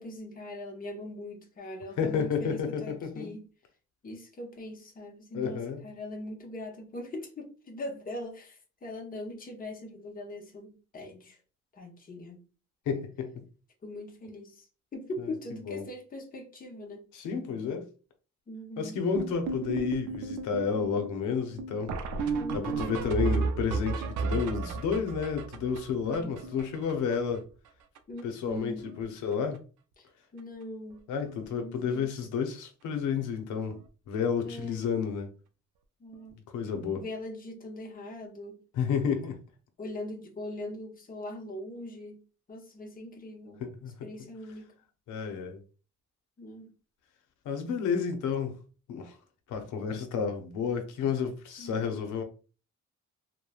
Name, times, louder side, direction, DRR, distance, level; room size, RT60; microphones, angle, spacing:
voice 1, 0.0-3.5 4.0-11.4 11.7-12.5 13.8-14.7 14.9-17.1 18.5-19.0 22.3-23.5 26.0-26.4 28.1-28.9 30.0-30.1 30.3-31.0 31.5-32.1 34.4-34.8 36.0-36.4 36.9-38.6 39.8-42.2 42.5-43.6 44.0-44.7 46.4-46.7 51.6-51.9, left 1 dB, 30° left, 0.9 m, -41 dB
voice 2, 2.0-3.3 5.3-5.8 12.9-13.5 15.7-15.8 17.1-17.9 18.8-21.9 22.5-27.4 28.2-29.6 31.1-33.8 34.1-35.3 36.5-37.0 38.7-39.4 43.6-43.9 45.1-45.6 47.4-48.6 48.9-49.1 49.5-52.2, left 6 dB, 85° left, 0.7 m, -31 dB
sound 1, 19.1-27.4 27.6-27.7 27.9-28.2 28.5-29.0 29.3-29.6 30.4-30.5 30.9-31.0 31.3-31.4 33.7-33.8 36.1-36.2, right 4 dB, 75° right, 0.5 m, -33 dB
3.1 x 2.1 x 2.3 m
cardioid pair, 90°, 30 cm